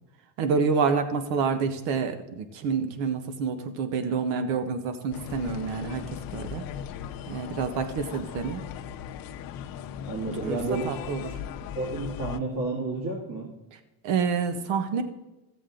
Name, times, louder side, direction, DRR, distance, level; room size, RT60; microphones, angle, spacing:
voice 1, 0.4-6.0 6.3-6.6 7.3-8.6 10.4-10.6 10.8-11.2 14.0-15.0, right 5 dB, 75° right, 9 dB, 1.3 m, -28 dB
sound 1, 5.1-12.4, left 9 dB, 55° left, 0.8 m, -38 dB
voice 2, 10.1-10.9 11.7-13.5, right 2 dB, 50° right, -3 dB, 2.5 m, -30 dB
15.0 x 7.6 x 3.8 m, 1.0 s
cardioid pair, 130°, 43 cm